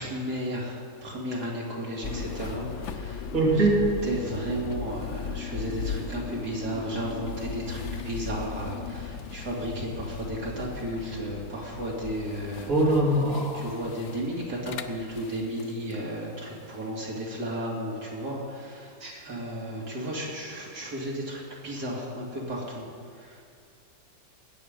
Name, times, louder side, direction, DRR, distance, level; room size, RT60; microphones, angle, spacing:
voice 1, 0.0-3.3 3.6-3.7 4.0-12.7 13.5-22.9 23.1-23.4, right 1 dB, 60° right, -3 dB, 3.2 m, -34 dB
sound 1, 2.0-16.0, left 6 dB, 65° left, 0.7 m, -37 dB
voice 2, 3.3-3.8 12.7-13.6 19.0-19.1, right 2 dB, 45° right, -5 dB, 3.4 m, -22 dB
20.5 x 8.9 x 5.3 m, 2.3 s
omnidirectional pair, 1.9 m